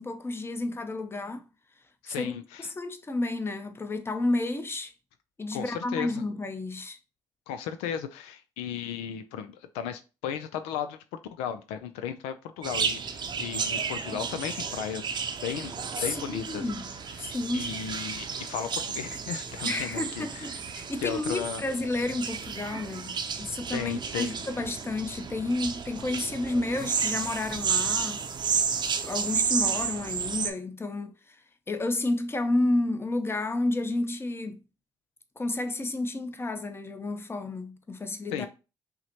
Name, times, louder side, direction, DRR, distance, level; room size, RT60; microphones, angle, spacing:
voice 1, 0.0-1.4 2.1-2.3 2.6-4.9 5.4-7.0 16.0-16.9 17.2-17.7 19.7-28.6 29.1-31.4 31.7-34.6 35.4-38.5, left 2 dB, 25° left, 0.7 m, -31 dB
voice 2, 2.0-2.7 5.5-6.2 7.5-16.6 17.5-20.6 21.0-21.6 23.7-24.4 28.5-28.6 38.3-38.5, left 8 dB, 85° left, 0.4 m, -35 dB
sound 1, 12.6-30.5, right 6 dB, 50° right, 0.6 m, -32 dB
5.6 x 2.1 x 2.8 m
supercardioid pair, 55°, 10 cm